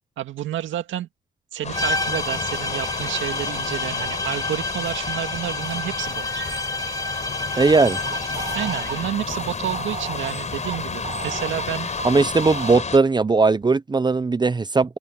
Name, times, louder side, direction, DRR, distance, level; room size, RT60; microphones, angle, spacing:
voice 1, 0.2-1.1 1.5-6.4 6.9-7.1 8.5-11.9, right 12 dB, 75° right, 2.0 m, -30 dB
sound 1, 1.6-13.0, left 5 dB, 35° left, 5.9 m, -31 dB
sound 2, 1.7-9.1, left 2 dB, 20° left, 3.2 m, -29 dB
sound 3, 6.0-12.8, right 6 dB, 45° right, 3.4 m, -37 dB
voice 2, 7.6-8.0 12.0-15.0, right 3 dB, 20° right, 0.8 m, -18 dB
open air
cardioid pair, 90°, 20 cm